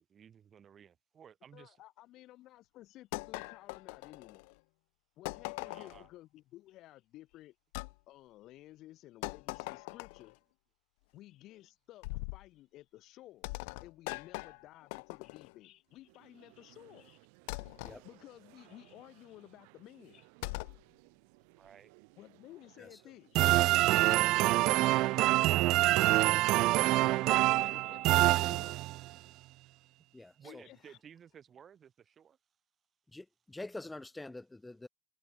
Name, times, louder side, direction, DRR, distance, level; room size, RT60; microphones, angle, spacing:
voice 1, 0.0-1.8 5.6-6.1 14.4-14.6 21.6-21.9 30.3-32.4, right 8 dB, 25° right, 5.5 m, -56 dB
voice 2, 1.5-4.6 5.2-7.6 8.1-10.4 11.1-13.5 13.8-17.3 18.0-20.3 22.2-23.4 23.8-25.9 26.8-28.8 30.4-31.0, left 15 dB, 45° left, 6.1 m, -54 dB
sound 1, 3.1-4.5 5.3-6.1 7.7-7.9 9.2-10.3 12.0-12.5 13.4-15.5 17.5-18.0 20.4-20.8, left 30 dB, 90° left, 1.3 m, -41 dB
sound 2, 15.9-25.9, right 35 dB, 80° right, 7.2 m, -63 dB
sound 3, 23.4-29.1, right 18 dB, 50° right, 0.4 m, -26 dB
voice 3, 30.1-30.6 33.1-34.9, left 2 dB, 5° left, 1.0 m, -46 dB
cardioid pair, 165°, 0 cm